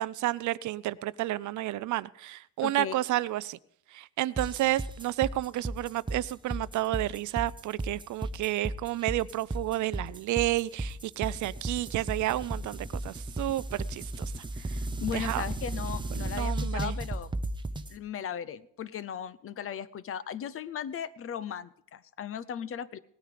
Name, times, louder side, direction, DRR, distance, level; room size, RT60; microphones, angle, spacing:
voice 1, 0.0-3.6 3.9-14.8 15.1-15.4 16.2-17.0, right 16 dB, 55° right, 0.4 m, -31 dB
voice 2, 2.6-2.9 15.0-17.3 17.9-23.0, left 9 dB, 40° left, 0.6 m, -37 dB
sound 1, 4.4-17.9, right 2 dB, 15° right, 0.7 m, -35 dB
18.0 x 9.5 x 5.0 m
cardioid pair, 135°, 35 cm